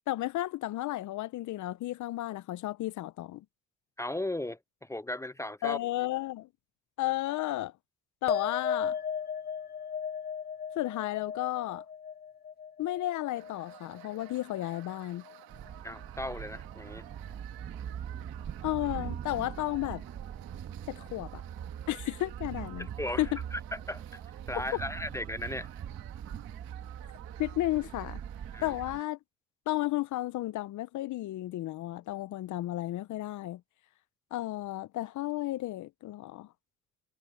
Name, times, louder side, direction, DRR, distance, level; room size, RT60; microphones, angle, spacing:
voice 1, 0.1-3.4 5.6-6.5 7.0-7.7 8.2-9.0 10.8-11.8 12.8-15.2 18.6-20.0 20.9-21.4 21.9-22.9 23.2-23.3 27.4-28.2 28.6-29.2 29.7-33.6 34.3-36.5, left 15 dB, 60° left, 0.7 m, -33 dB
voice 2, 4.0-5.8 15.8-17.1 22.8-24.2 24.5-25.7 28.5-28.7, left 1 dB, 10° left, 0.4 m, -37 dB
sound 1, 8.3-15.0 15.2-15.9, left 7 dB, 30° left, 0.8 m, -36 dB
sound 2, 13.3-29.1, right 17 dB, 85° right, 2.0 m, -53 dB
sound 3, 15.5-29.0, right 9 dB, 45° right, 1.6 m, -42 dB
cardioid pair, 105°, 34 cm